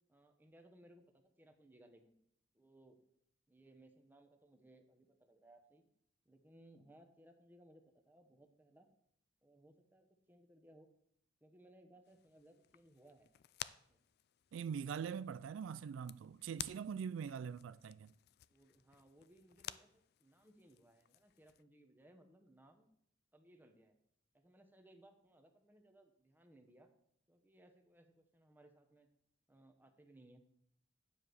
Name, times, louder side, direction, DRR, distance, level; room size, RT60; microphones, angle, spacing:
voice 1, 0.1-2.2 2.5-3.0 3.5-5.8 6.2-8.9 9.4-10.9 11.4-13.3 13.9-14.0 18.5-22.9 23.3-24.0 24.3-26.9 27.3-29.1 29.5-30.4, right 1 dB, 10° right, 1.0 m, -64 dB
sound 1, 12.0-21.6, left 12 dB, 55° left, 0.3 m, -54 dB
voice 2, 14.5-18.1, right 7 dB, 90° right, 0.3 m, -43 dB
9.9 x 4.8 x 6.9 m
head